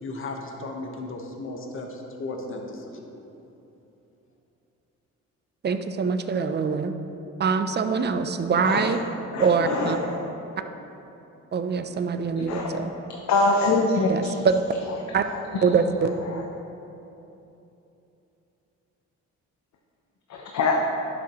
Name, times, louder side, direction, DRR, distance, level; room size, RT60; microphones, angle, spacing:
voice 1, 0.0-3.1, left 2 dB, 45° left, 2 dB, 1.2 m, -35 dB
voice 2, 5.6-6.9 7.4-9.0 9.4-10.0 11.5-12.9 14.1-14.6 15.1-15.2 15.6-16.1, right 5 dB, 35° right, 8 dB, 0.5 m, -24 dB
voice 3, 8.6-9.0 9.3-10.2 12.3-12.8 13.3-14.3 15.3-15.4 16.3-16.4 20.3-20.8, left 3 dB, 65° left, 1 dB, 0.8 m, -24 dB
10.5 x 7.5 x 3.1 m, 2.9 s
cardioid pair, 90°, 30 cm